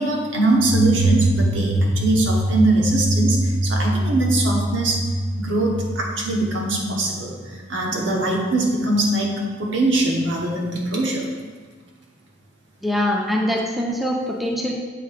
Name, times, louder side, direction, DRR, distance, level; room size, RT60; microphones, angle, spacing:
voice 1, 0.0-5.1 5.4-11.3, right 2 dB, 70° right, -1 dB, 1.1 m, -22 dB
sound 1, 0.6-7.1, right 1 dB, 85° left, 0.7 m, -23 dB
voice 2, 12.8-14.7, left 1 dB, ahead, -1 dB, 0.5 m, -23 dB
7.6 x 2.8 x 4.9 m, 1.4 s
head